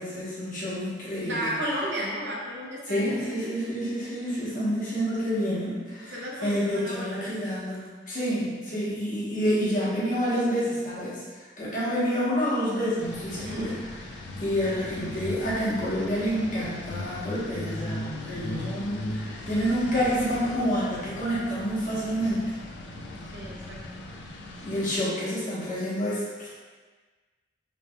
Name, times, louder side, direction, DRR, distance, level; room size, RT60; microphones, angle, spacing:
voice 1, 0.0-1.6 2.9-13.9 14.4-22.6 24.6-26.5, equal, 45° left, -9 dB, 1.0 m, -28 dB
voice 2, 1.2-3.5 6.0-7.3 13.3-13.7 23.3-23.8, equal, 80° right, -4 dB, 0.7 m, -33 dB
sound 1, 13.0-25.0, left 1 dB, 85° left, 0.4 m, -38 dB
3.2 x 2.9 x 2.2 m, 1.4 s
head